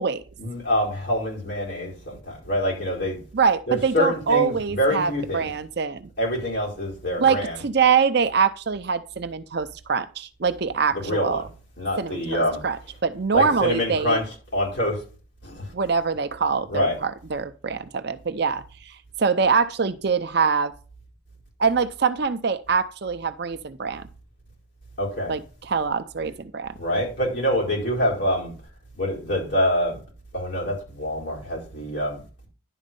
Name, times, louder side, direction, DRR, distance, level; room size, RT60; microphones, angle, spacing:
voice 1, 0.4-3.2 3.7-5.5 6.2-7.6 10.9-11.4 11.8-12.6 13.3-14.2 14.5-15.0 15.4-15.7 16.7-17.0 25.0-25.3 26.8-28.5 28.9-30.0 30.3-32.2, equal, 55° left, -3 dB, 4.6 m, -25 dB
voice 2, 3.3-6.0 7.2-11.4 12.0-12.8 13.0-14.2 15.7-18.9 19.2-20.7 21.6-24.0 25.3-26.7, right 5 dB, 50° right, 12 dB, 0.6 m, -24 dB
11.0 x 4.2 x 5.3 m, 0.37 s
head